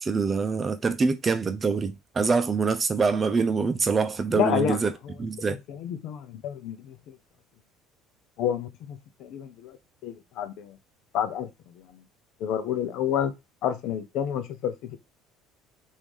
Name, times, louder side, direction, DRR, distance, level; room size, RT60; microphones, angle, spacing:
voice 1, 0.0-4.9 5.2-5.6, right 4 dB, 30° right, 0.7 m, -25 dB
voice 2, 4.3-4.8 5.5-7.1 8.4-9.8 10.0-10.8 11.1-12.0 12.4-13.3 13.6-15.0, left 9 dB, 65° left, 0.7 m, -30 dB
3.0 x 2.7 x 3.5 m
supercardioid pair, 80°, 0 cm